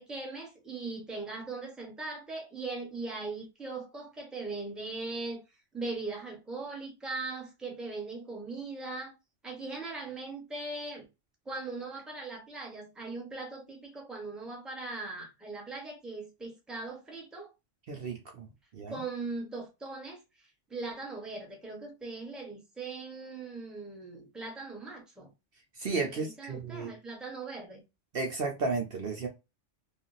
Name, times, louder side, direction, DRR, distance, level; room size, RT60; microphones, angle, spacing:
voice 1, 0.0-5.4 5.7-9.1 9.4-11.1 11.5-17.5 18.9-25.3 26.1-27.8, right 3 dB, ahead, 0.9 m, -40 dB
voice 2, 17.9-18.5 18.7-19.0 25.8-26.9 28.1-29.3, right 4 dB, 55° right, 0.8 m, -33 dB
3.4 x 2.4 x 2.6 m
omnidirectional pair, 1.3 m